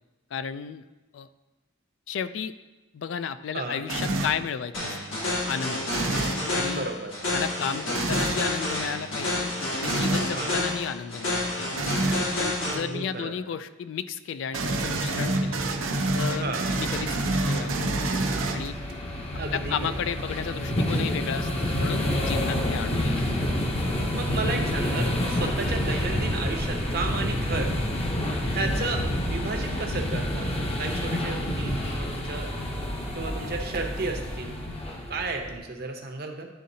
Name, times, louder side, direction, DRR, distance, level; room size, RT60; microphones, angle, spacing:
voice 1, 0.3-0.8 1.1-1.3 2.1-2.5 2.9-5.0 5.5-5.9 6.5-6.9 7.3-11.7 12.4-15.6 16.2-18.1 18.5-18.8 19.5-23.2, left 7 dB, 65° left, 13 dB, 0.3 m, -33 dB
sound 1, 3.9-4.4 5.9-6.4 7.9-8.4 9.8-10.3 11.8-12.3 14.5-18.9, right 2 dB, 85° right, 0.7 m, -27 dB
sound 2, 4.7-12.8, left 2 dB, 80° left, 1.6 m, -29 dB
voice 2, 6.7-7.1 10.3-10.6 12.7-13.3 16.4-16.6 19.4-20.0 24.1-27.7 28.4-30.5 30.8-32.5 33.1-34.6 35.1-36.5, right 3 dB, 50° right, 3 dB, 0.8 m, -33 dB
sound 3, 16.5-35.6, left 1 dB, 30° left, 0.7 m, -29 dB
11.0 x 3.7 x 2.7 m, 1.1 s
head